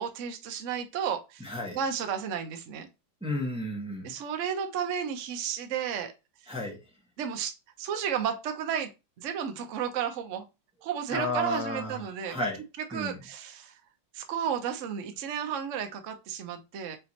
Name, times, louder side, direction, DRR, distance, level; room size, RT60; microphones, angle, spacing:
voice 1, 0.0-2.9 4.0-6.1 7.2-8.9 9.2-10.4 10.8-12.4 12.9-13.7 14.1-17.0, right 8 dB, 60° right, 0.8 m, -33 dB
voice 2, 1.4-1.8 3.2-4.1 6.5-6.8 11.1-12.6 12.9-13.2, left 1 dB, 5° right, 0.9 m, -32 dB
5.0 x 3.0 x 2.8 m
omnidirectional pair, 2.0 m